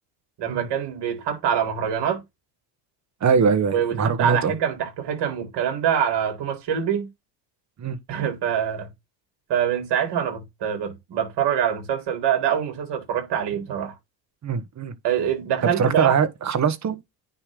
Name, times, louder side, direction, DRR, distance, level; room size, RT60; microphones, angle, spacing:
voice 1, 0.4-2.2 3.7-7.1 8.1-8.9 9.5-13.9 15.0-16.1, right 9 dB, 60° right, 4.2 m, -25 dB
voice 2, 3.2-4.5 7.8-8.0 14.4-14.9 15.8-17.0, right 6 dB, 40° right, 1.4 m, -22 dB
9.7 x 3.2 x 3.8 m
cardioid pair, 105°, 45 cm